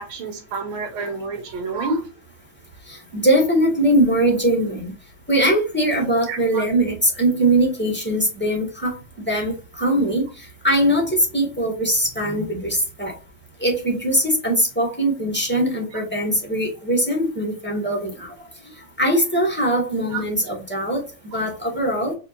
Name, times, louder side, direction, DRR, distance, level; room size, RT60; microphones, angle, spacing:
voice 1, 0.0-2.0 6.3-6.6 20.1-20.2, right 3 dB, 75° right, 2.0 m, -28 dB
voice 2, 2.9-4.9 5.3-9.0 9.2-13.1 13.6-18.3 19.0-21.0 21.3-22.1, right 1 dB, 5° left, 1.6 m, -21 dB
5.0 x 3.5 x 2.6 m
omnidirectional pair, 2.3 m